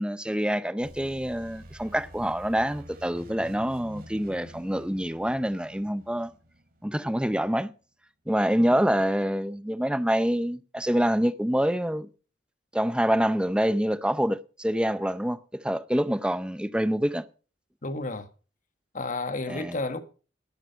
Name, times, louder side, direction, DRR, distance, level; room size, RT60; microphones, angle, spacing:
voice 1, 0.0-6.3 6.8-7.7 8.3-12.1 12.7-17.3 19.5-19.7, equal, 5° right, 0.6 m, -26 dB
sound 1, 0.8-7.4, equal, 50° right, 2.6 m, -48 dB
voice 2, 17.8-18.3 18.9-20.0, left 2 dB, 40° left, 1.3 m, -32 dB
12.5 x 11.5 x 5.4 m
head